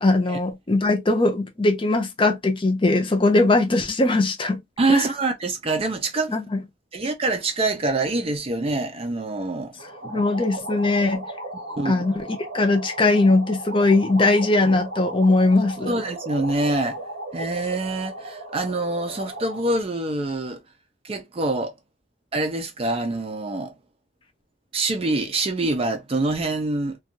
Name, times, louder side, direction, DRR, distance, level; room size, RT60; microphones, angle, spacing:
voice 1, 0.0-4.6 4.9-5.0 6.3-6.6 10.1-11.2 11.8-12.2 12.5-15.9, left 2 dB, 30° left, 0.6 m, -20 dB
voice 2, 4.8-6.4 6.9-9.7 10.0-10.1 11.7-12.0 15.9-17.0 17.3-20.6 21.0-21.7 22.3-23.7 24.7-27.0, right 2 dB, 35° right, 0.5 m, -25 dB
sound 1, 9.8-19.8, right 1 dB, 90° right, 0.7 m, -36 dB
2.5 x 2.3 x 2.8 m
head